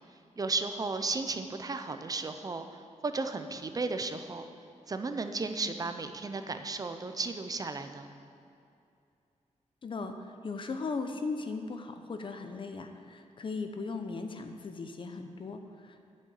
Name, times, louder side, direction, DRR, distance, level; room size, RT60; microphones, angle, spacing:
voice 1, 0.4-4.4 4.9-8.1, right 3 dB, 30° right, 8 dB, 0.6 m, -34 dB
voice 2, 9.8-16.1, left 4 dB, 40° left, 7 dB, 0.7 m, -38 dB
8.8 x 6.4 x 8.5 m, 2.5 s
wide cardioid pair, 145°, 13 cm